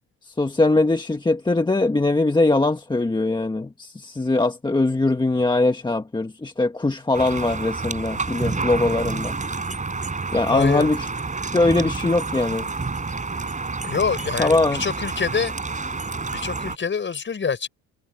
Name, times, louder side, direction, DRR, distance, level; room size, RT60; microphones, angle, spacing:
voice 1, 0.2-9.4 10.3-11.1 11.5-12.7 14.4-14.8, left 2 dB, 10° left, 1.4 m, -21 dB
sound 1, 7.1-16.8, right 4 dB, 20° right, 5.6 m, -29 dB
voice 2, 10.5-10.9 13.8-15.5 16.3-17.7, left 6 dB, 30° left, 6.6 m, -25 dB
cardioid pair, 110°, 39 cm